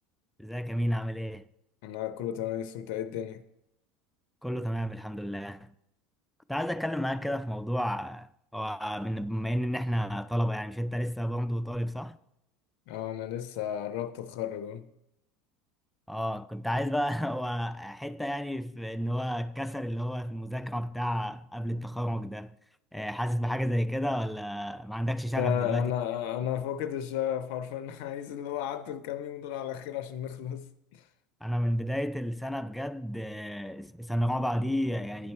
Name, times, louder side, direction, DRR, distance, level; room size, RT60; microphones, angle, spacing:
voice 1, 0.4-1.5 4.4-5.7 6.5-12.2 16.1-22.5 22.9-25.9 31.4-35.3, equal, 5° left, 0.4 m, -31 dB
voice 2, 1.8-3.4 12.9-14.9 25.4-31.0, left 10 dB, 65° left, 0.4 m, -33 dB
9.8 x 4.1 x 4.4 m
hypercardioid pair, 80°, 0 cm